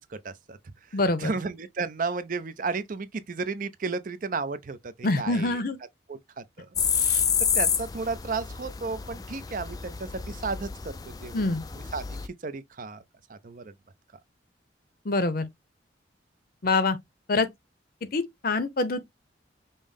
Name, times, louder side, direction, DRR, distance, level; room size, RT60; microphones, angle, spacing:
voice 1, 0.1-0.6 0.9-5.6 6.1-7.3 7.5-10.9 11.2-11.4 11.7-13.0 13.3-13.7, right 4 dB, 45° right, 0.5 m, -34 dB
voice 2, 0.9-1.3 5.0-5.8 11.3-11.6 15.0-15.5 16.6-17.0 17.3-17.5 18.1-19.0, left 3 dB, 50° left, 0.7 m, -25 dB
sound 1, 6.8-12.3, left 7 dB, 20° left, 0.3 m, -29 dB
5.4 x 2.1 x 3.3 m
head